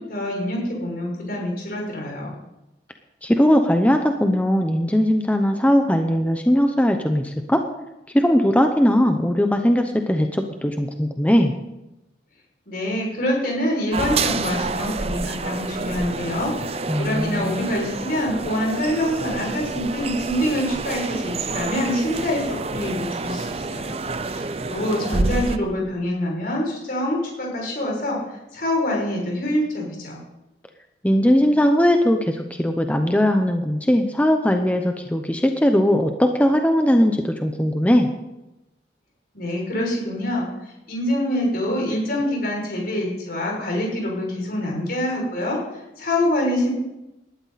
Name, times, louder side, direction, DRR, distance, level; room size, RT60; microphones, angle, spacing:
voice 1, 0.1-2.4 12.7-24.0 24.3-30.2 39.3-46.7, left 1 dB, 55° left, -1 dB, 6.1 m, -25 dB
voice 2, 3.2-7.7 8.1-11.5 16.9-17.6 31.0-38.1, equal, 10° left, 5 dB, 0.8 m, -19 dB
sound 1, 13.9-25.6, right 3 dB, 35° right, 0.6 m, -28 dB
19.0 x 12.5 x 4.1 m, 0.95 s
head